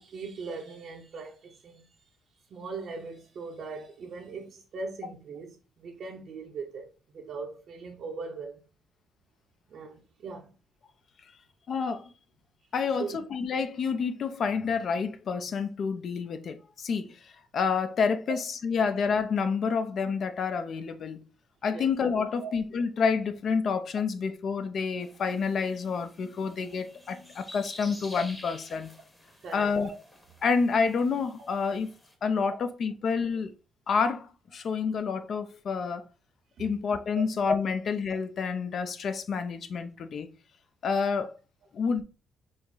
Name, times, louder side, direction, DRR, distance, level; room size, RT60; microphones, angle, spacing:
voice 1, 0.0-1.9 2.5-8.6 9.7-10.5 12.9-13.2 21.7-21.9 22.4-22.5 29.3-30.0 37.1-37.2, right 4 dB, 65° right, 0.6 m, -40 dB
voice 2, 11.7-12.1 12.7-21.2 21.6-28.9 29.5-29.9 30.4-31.9 32.2-33.5 33.9-36.0 36.6-40.3 40.8-41.3 41.7-42.0, left 5 dB, 55° left, 0.5 m, -28 dB
sound 1, 25.0-32.1, left 1 dB, 10° left, 1.0 m, -50 dB
5.0 x 2.0 x 3.8 m
cardioid pair, 90°, 0 cm